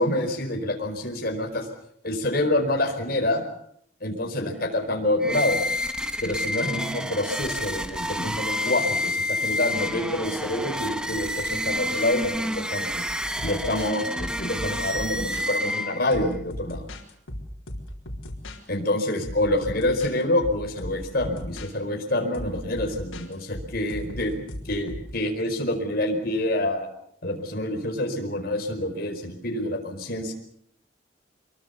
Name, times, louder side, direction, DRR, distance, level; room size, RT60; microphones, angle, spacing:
voice 1, 0.0-1.7 2.0-3.4 4.0-5.6 6.2-13.0 13.4-16.8 18.7-26.9 27.2-30.3, left 1 dB, 50° left, 3 dB, 4.8 m, -27 dB
sound 1, 5.2-16.3, left 1 dB, 5° right, 1.0 m, -29 dB
sound 2, 13.1-15.5 16.1-18.6 19.0-21.7 22.3-25.1, left 1 dB, 85° left, 4.2 m, -37 dB
25.5 x 22.5 x 7.0 m, 0.67 s
head